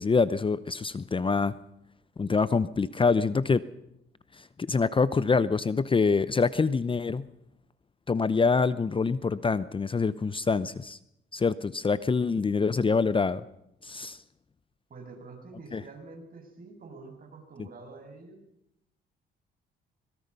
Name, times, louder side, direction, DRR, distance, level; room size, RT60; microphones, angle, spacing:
voice 1, 0.0-1.5 2.2-3.6 4.3-7.3 8.1-11.0 11.3-13.4 13.8-14.2 15.7-15.8, left 4 dB, 25° left, 15 dB, 0.8 m, -25 dB
voice 2, 14.9-18.4, right 3 dB, 45° right, 3 dB, 6.9 m, -47 dB
25.5 x 22.0 x 5.5 m, 0.78 s
cardioid pair, 90°, 20 cm